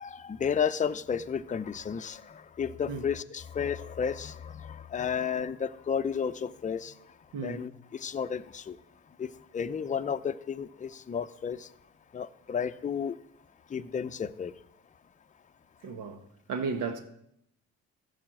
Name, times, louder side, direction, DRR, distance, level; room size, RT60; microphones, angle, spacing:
voice 1, 0.0-7.0 7.4-8.8 9.2-11.7 12.1-13.2 13.7-14.5, left 7 dB, 25° left, 0.5 m, -32 dB
voice 2, 7.3-7.7 15.8-17.0, right 4 dB, 85° right, 1.5 m, -34 dB
14.5 x 5.0 x 7.7 m
cardioid pair, 90°, 30 cm